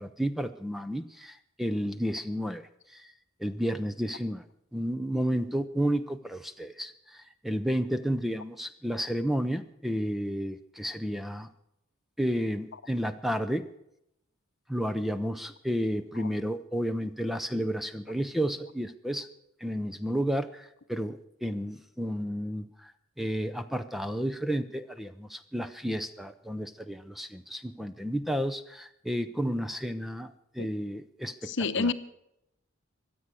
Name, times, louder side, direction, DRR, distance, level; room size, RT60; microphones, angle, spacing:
voice 1, 0.0-3.1 3.4-4.5 4.7-11.5 12.2-13.7 14.7-19.3 19.6-22.9 23.2-31.9, equal, ahead, 0.5 m, -32 dB
voice 2, 31.4-31.9, left 4 dB, 60° left, 0.8 m, -28 dB
23.5 x 8.3 x 6.3 m
head